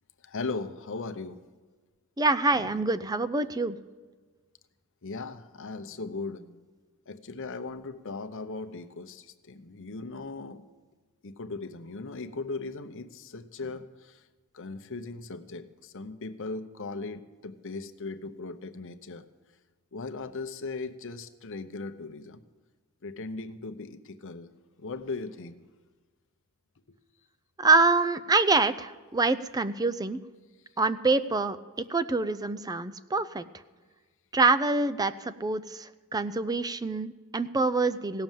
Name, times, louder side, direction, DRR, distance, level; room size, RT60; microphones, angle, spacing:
voice 1, 0.2-1.4 2.5-2.9 5.0-6.6 7.1-10.6 11.2-14.2 14.5-19.2 19.9-22.4 23.0-24.5 24.8-25.6, left 3 dB, 60° left, 9 dB, 0.9 m, -38 dB
voice 2, 2.2-3.8 27.6-30.2 30.8-31.6 31.9-33.4 34.3-38.2, right 3 dB, 15° right, 14 dB, 0.5 m, -25 dB
17.0 x 6.9 x 9.1 m, 1.4 s
head